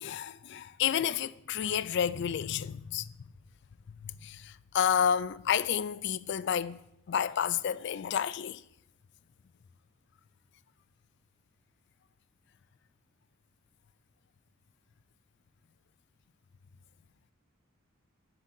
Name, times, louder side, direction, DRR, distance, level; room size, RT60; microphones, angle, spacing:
voice 1, 0.0-3.1 4.0-6.8 7.1-8.6, left 8 dB, 55° left, 0.3 m, -30 dB
11.0 x 3.8 x 7.4 m
head